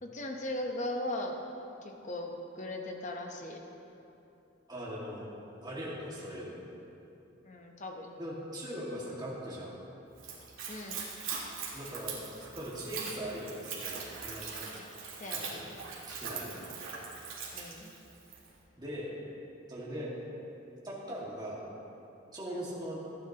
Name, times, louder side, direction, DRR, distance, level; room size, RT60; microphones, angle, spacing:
voice 1, 0.0-1.4 1.8-3.6 7.4-8.1 10.7-11.1 14.7-14.9 15.2-15.7 17.5-17.9 22.5-22.7, left 1 dB, 35° left, 2 dB, 0.9 m, -38 dB
voice 2, 4.7-5.3 5.6-6.6 8.2-9.8 11.7-12.2 12.5-14.7 15.3-15.7 16.1-16.6 18.8-19.2 19.7-20.1 20.8-21.6 22.3-23.0, equal, 20° right, -6 dB, 1.9 m, -40 dB
Splash splatter / Trickle dribble, 10.1-18.5, right 5 dB, 80° right, 2.1 m, -41 dB
15.0 x 9.9 x 2.9 m, 2.9 s
head